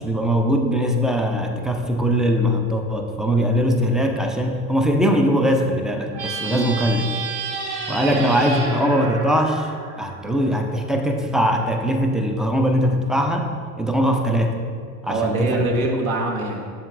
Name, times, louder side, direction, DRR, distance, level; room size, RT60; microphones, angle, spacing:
voice 1, 0.0-7.1 7.9-9.7 10.0-13.5 13.8-14.6 15.0-15.6, equal, ahead, 3 dB, 0.3 m, -21 dB
sound 1, 6.1-10.6, right 4 dB, 35° right, 1.7 m, -30 dB
voice 2, 15.0-16.7, right 2 dB, 70° right, 0 dB, 1.3 m, -24 dB
7.7 x 7.1 x 2.4 m, 2.1 s
figure-of-eight pair, 70°, 44 cm